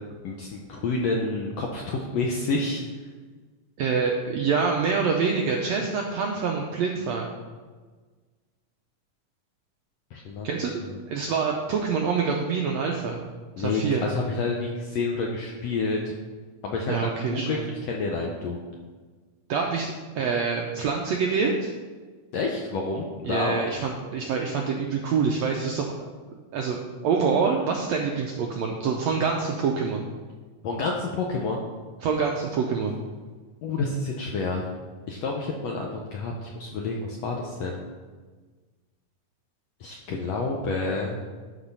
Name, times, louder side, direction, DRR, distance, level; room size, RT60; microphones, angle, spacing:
voice 1, 0.2-3.1 10.1-10.5 10.8-11.0 13.6-16.1 16.6-17.0 17.3-18.6 22.3-23.6 30.6-31.6 33.6-34.7 35.1-37.8 39.8-41.2, left 3 dB, 80° left, 0 dB, 1.5 m, -29 dB
voice 2, 3.8-7.3 10.4-10.8 11.1-13.2 13.6-14.0 16.9-17.6 19.5-21.7 23.2-25.9 26.5-26.8 27.0-30.0 32.0-33.0, right 5 dB, 80° right, 0 dB, 1.5 m, -26 dB
12.0 x 4.1 x 5.4 m, 1.4 s
omnidirectional pair, 3.8 m